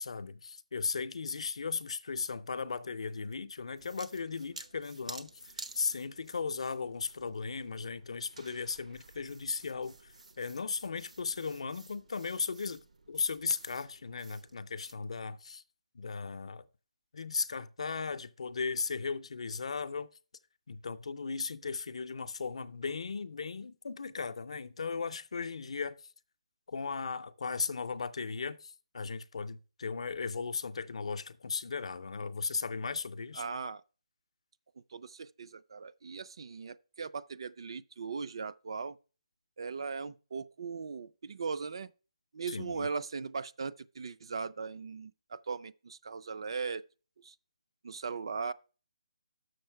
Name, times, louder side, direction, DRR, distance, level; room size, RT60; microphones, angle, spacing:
voice 1, 0.0-5.3 5.6-12.8 13.1-15.6 15.9-16.6 17.1-20.1 20.7-26.0 26.7-33.4 42.5-42.9, left 5 dB, 60° left, 0.5 m, -36 dB
sound 1, 3.8-14.9, right 3 dB, 80° right, 0.9 m, -52 dB
voice 2, 33.4-33.8 34.9-39.0 39.6-41.9 42.3-46.8 47.2-47.4 47.8-48.5, right 5 dB, 45° right, 0.3 m, -39 dB
6.5 x 6.3 x 4.5 m
hypercardioid pair, 170°, 4 cm